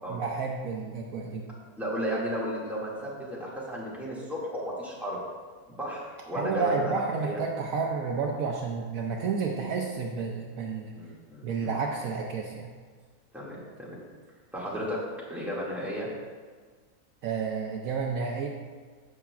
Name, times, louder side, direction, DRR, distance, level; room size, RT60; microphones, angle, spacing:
voice 1, 0.1-1.5 6.3-10.9 11.4-12.7 17.2-18.5, right 5 dB, 70° right, 1 dB, 1.1 m, -31 dB
voice 2, 1.8-5.2 5.8-7.4 10.9-11.7 13.3-14.0 14.5-15.0 15.3-16.1, right 1 dB, ahead, -7 dB, 2.0 m, -34 dB
14.0 x 5.8 x 2.4 m, 1.5 s
omnidirectional pair, 1.6 m